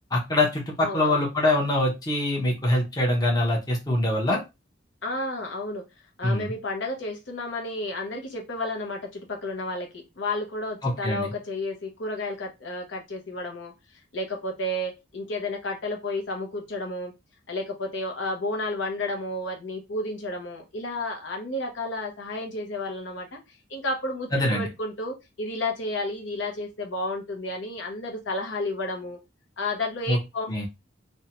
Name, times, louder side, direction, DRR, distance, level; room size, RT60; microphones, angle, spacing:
voice 1, 0.1-4.4 6.2-6.5 10.8-11.3 24.3-24.7 30.1-30.2 30.5-30.6, left 1 dB, 20° left, -1 dB, 0.7 m, -24 dB
voice 2, 0.8-1.3 5.0-5.8 6.2-13.7 14.1-17.1 17.5-29.2 29.6-30.5, left 2 dB, 70° left, 2 dB, 0.7 m, -32 dB
2.6 x 2.1 x 2.8 m, 0.24 s
head